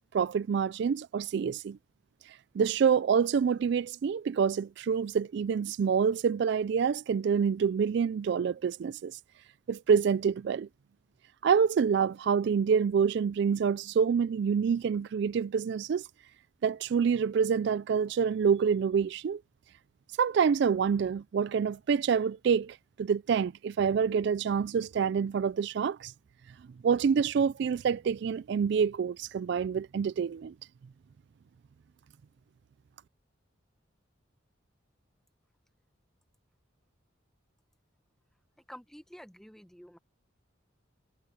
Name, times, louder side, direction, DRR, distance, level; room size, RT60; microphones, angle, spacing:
voice 1, 0.1-1.8 2.3-9.2 9.7-10.7 11.4-16.1 16.6-19.4 20.2-26.1 26.8-30.5, right 6 dB, 60° right, 0.3 m, -27 dB
voice 2, 38.7-40.0, equal, ahead, 1.2 m, -49 dB
head